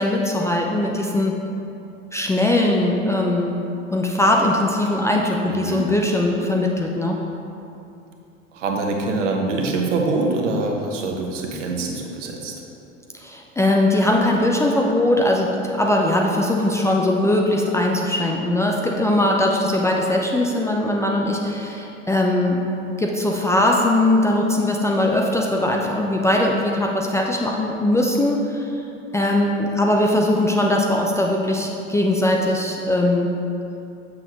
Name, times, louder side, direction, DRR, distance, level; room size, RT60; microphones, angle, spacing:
voice 1, 0.0-1.4 2.1-3.6 3.9-7.2 13.1-22.6 23.0-28.8 29.1-33.3, left 1 dB, 10° left, -1 dB, 0.4 m, -20 dB
voice 2, 8.5-12.5, right 3 dB, 70° right, 1 dB, 1.1 m, -24 dB
7.6 x 6.4 x 3.0 m, 2.7 s
figure-of-eight pair, 75°, 38 cm